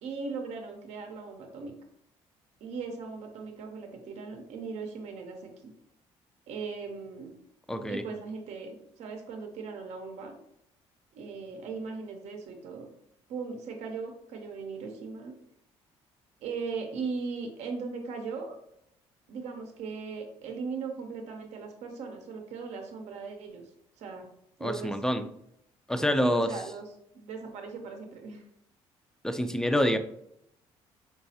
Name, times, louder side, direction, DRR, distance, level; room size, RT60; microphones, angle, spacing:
voice 1, 0.0-1.7 2.6-5.7 6.5-7.3 7.9-10.4 11.1-12.9 13.3-15.3 16.4-18.6 19.3-23.7 24.0-24.3 24.6-25.3 26.2-26.8 27.1-28.4, right 4 dB, 75° right, 3 dB, 0.6 m, -38 dB
voice 2, 7.7-8.0 24.6-25.2 25.9-26.5 29.2-30.0, left 1 dB, 5° left, 8 dB, 0.3 m, -26 dB
4.0 x 2.3 x 2.7 m, 0.74 s
supercardioid pair, 75°, 12 cm